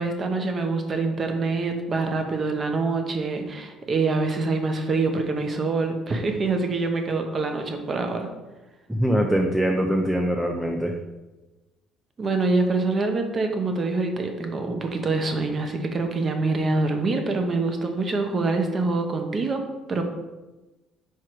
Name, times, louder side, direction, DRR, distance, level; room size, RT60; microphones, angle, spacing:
voice 1, 0.0-8.3 12.2-20.0, right 3 dB, 30° right, 5 dB, 0.8 m, -25 dB
voice 2, 8.9-10.9, equal, 5° right, 2 dB, 0.5 m, -23 dB
4.8 x 4.6 x 4.6 m, 1.1 s
cardioid pair, 135°, 0 cm